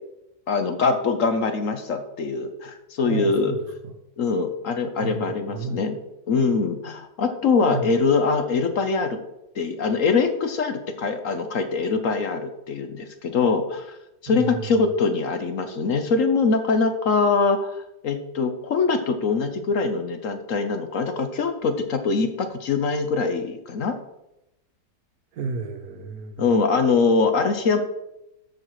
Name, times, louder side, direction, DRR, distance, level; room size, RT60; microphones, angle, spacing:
voice 1, 0.5-3.6 4.2-6.0 6.3-9.2 9.5-14.0 14.2-24.0 26.4-27.8, left 4 dB, 55° left, 7 dB, 1.1 m, -23 dB
voice 2, 3.0-3.6 3.8-3.9 5.0-5.2 5.5-5.9 7.6-7.8 14.3-14.4 25.4-26.4, right 4 dB, 65° right, 7 dB, 1.3 m, -31 dB
13.5 x 4.9 x 4.8 m, 0.89 s
omnidirectional pair, 1.8 m